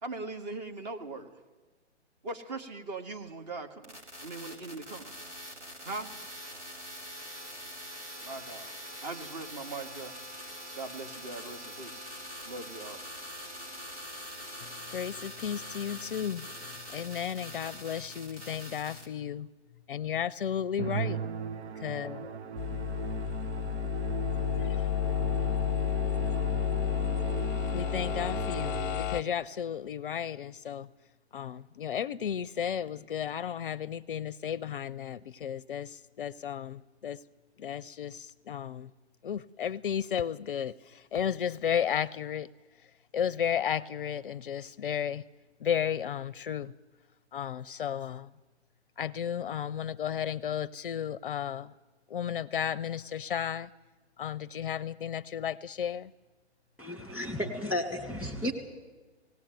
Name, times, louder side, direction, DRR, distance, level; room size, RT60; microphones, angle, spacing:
voice 1, 0.0-1.3 2.2-5.1 5.8-6.1 8.2-10.2 10.7-12.0 12.4-13.1, right 3 dB, 35° right, 2.0 m, -40 dB
sound 1, 3.8-19.1, equal, 85° right, 5.1 m, -44 dB
voice 2, 14.6-16.4 16.9-19.5 19.9-21.2 21.8-22.4 24.6-24.8 27.7-30.9 31.3-37.2 37.6-38.9 39.2-42.5 42.8-42.9 43.1-45.2 45.6-46.7 47.3-48.3 49.0-51.7 52.1-53.7 54.2-56.1, left 9 dB, 50° left, 0.6 m, -33 dB
Musical instrument, 20.8-29.3, right 7 dB, 65° right, 0.7 m, -38 dB
sound 2, 22.6-29.2, left 10 dB, 20° left, 0.8 m, -31 dB
voice 3, 56.8-58.5, left 1 dB, 5° right, 2.2 m, -33 dB
19.0 x 17.0 x 9.2 m
hypercardioid pair, 145°, 35 cm